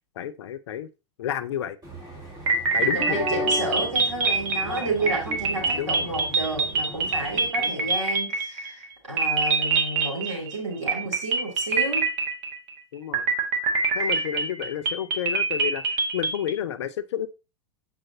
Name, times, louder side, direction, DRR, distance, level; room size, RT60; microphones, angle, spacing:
voice 1, 0.2-0.9 1.2-1.8 2.7-3.5 5.7-6.2 7.6-8.0 12.9-13.3 13.9-17.3, left 10 dB, 65° left, 0.6 m, -31 dB
sound 1, 1.8-7.5, left 1 dB, 25° right, 3.3 m, -36 dB
sound 2, 2.5-8.9 9.2-10.6 10.9-12.7 13.1-16.5, right 4 dB, 50° right, 1.4 m, -25 dB
voice 2, 2.8-12.1, right 2 dB, 80° right, 2.7 m, -31 dB
7.6 x 4.8 x 2.7 m
figure-of-eight pair, 95°, 16 cm